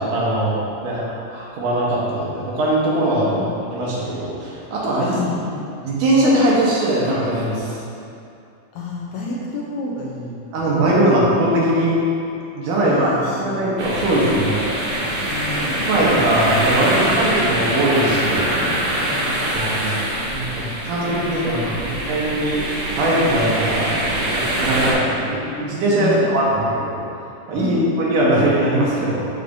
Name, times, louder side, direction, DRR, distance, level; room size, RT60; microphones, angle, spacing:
voice 1, 0.0-3.5 3.7-5.2 5.8-7.8 10.5-12.0 12.5-14.6 15.8-18.6 19.5-20.0 20.3-22.6 23.0-24.0 24.3-27.0 27.5-29.3, right 1 dB, 80° right, -6 dB, 2.7 m, -20 dB
voice 2, 5.1-5.7 8.8-10.7 12.8-13.6 15.3-15.9 19.0-20.7 21.0-22.2 26.0-26.3 26.6-26.7 27.6-27.9, left 3 dB, 75° left, -3 dB, 1.8 m, -31 dB
sound 1, 13.8-24.9, right 1 dB, 65° right, 1.4 m, -23 dB
6.9 x 6.5 x 2.6 m, 2.6 s
omnidirectional pair, 3.7 m